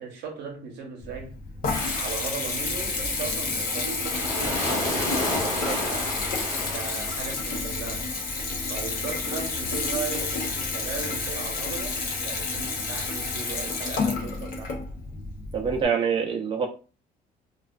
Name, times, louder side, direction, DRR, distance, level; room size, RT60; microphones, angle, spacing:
voice 1, 0.0-1.4 1.9-6.1 6.5-8.1 8.7-14.8, right 6 dB, 80° right, 0.7 m, -37 dB
Water tap faucet / Bathtub (filling or washing) / Trickle dribble, 1.0-15.9, left 3 dB, 60° left, 0.6 m, -30 dB
sound 1, 1.7-7.6, left 1 dB, 20° left, 1.0 m, -32 dB
voice 2, 15.5-16.7, right 6 dB, 30° right, 0.5 m, -25 dB
2.3 x 2.3 x 2.3 m
cardioid pair, 110°, 17 cm